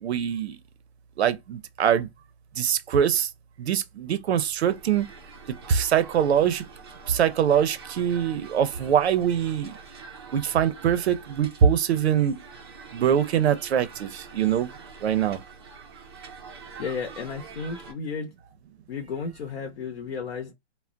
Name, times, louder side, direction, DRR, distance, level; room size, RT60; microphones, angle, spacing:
voice 1, 0.0-0.6 1.2-2.1 2.6-3.3 3.6-5.1 5.7-6.6 7.1-9.7 10.3-12.4 12.9-14.7 15.0-15.4, right 8 dB, 65° right, 0.6 m, -23 dB
sound 1, 4.6-17.9, right 5 dB, 25° right, 0.4 m, -45 dB
voice 2, 16.8-18.3 18.9-20.5, left 5 dB, 60° left, 0.7 m, -33 dB
2.2 x 2.1 x 3.6 m
hypercardioid pair, 160°, 35 cm